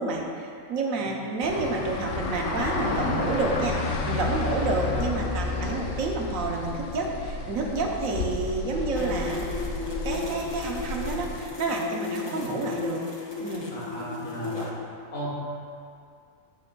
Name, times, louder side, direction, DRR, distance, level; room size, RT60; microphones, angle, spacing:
voice 1, 0.0-9.4 10.0-13.0 13.4-13.7, right 3 dB, 85° right, 0 dB, 1.2 m, -29 dB
sound 1, 1.4-11.5, left 3 dB, 65° left, 0.9 m, -31 dB
sound 2, 8.9-14.7, left 5 dB, 30° left, 0.5 m, -34 dB
voice 2, 13.7-14.8 15.1-15.5, right 1 dB, 45° left, -7 dB, 1.8 m, -35 dB
9.7 x 6.1 x 2.3 m, 2.3 s
omnidirectional pair, 1.4 m